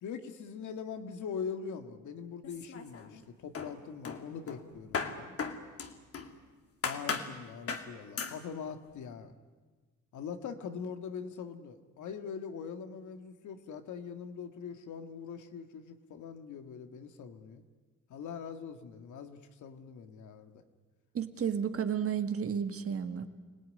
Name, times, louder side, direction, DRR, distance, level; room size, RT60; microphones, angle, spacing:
voice 1, 0.0-5.4 6.8-9.3 10.1-17.6 18.1-20.6, left 6 dB, 75° left, 7 dB, 1.9 m, -42 dB
sound 1, 2.4-3.2 3.5-6.3 6.8-7.3 7.7-7.9 8.2-8.4, left 5 dB, 50° left, 2.4 m, -37 dB
voice 2, 21.1-23.3, right 7 dB, 50° right, 8 dB, 1.8 m, -32 dB
25.0 x 18.0 x 9.8 m, 1.4 s
cardioid pair, 90°, 30 cm